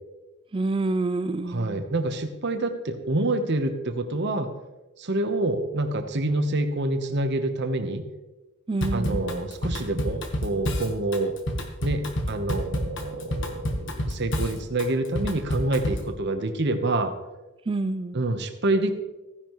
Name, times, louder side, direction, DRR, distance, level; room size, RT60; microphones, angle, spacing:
voice 1, 0.5-1.8 8.7-9.3 17.7-18.2, right 2 dB, 25° right, 13 dB, 0.4 m, -27 dB
voice 2, 1.4-4.5 5.0-8.1 8.9-11.4 11.8-17.1 18.1-18.9, right 2 dB, 50° right, 7 dB, 1.0 m, -27 dB
Drum kit / Drum, 8.8-16.1, left 1 dB, 55° left, 1.3 m, -29 dB
15.0 x 10.5 x 3.1 m, 1.1 s
head